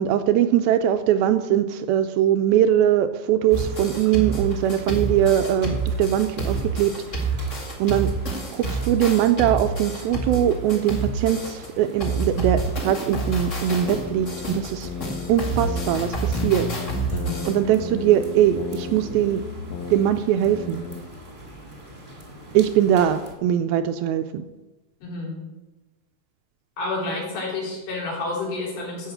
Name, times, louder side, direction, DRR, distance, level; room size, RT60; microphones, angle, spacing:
voice 1, 0.0-7.3 7.8-8.1 8.5-14.9 15.3-16.7 17.5-19.4 19.9-20.8 22.5-24.4, right 10 dB, 80° right, 9 dB, 2.3 m, -21 dB
sound 1, 3.5-11.7 12.0-17.5, right 3 dB, 35° left, 1.2 m, -28 dB
sound 2, 3.5-23.3, equal, 20° right, 1.4 m, -43 dB
sound 3, 13.1-15.3 15.6-20.0 20.4-21.0, left 4 dB, 70° left, 1.6 m, -34 dB
voice 2, 17.1-17.5 25.0-25.4 26.8-29.1, left 3 dB, 85° left, -4 dB, 6.1 m, -30 dB
13.0 x 5.7 x 8.1 m, 1.1 s
omnidirectional pair, 4.6 m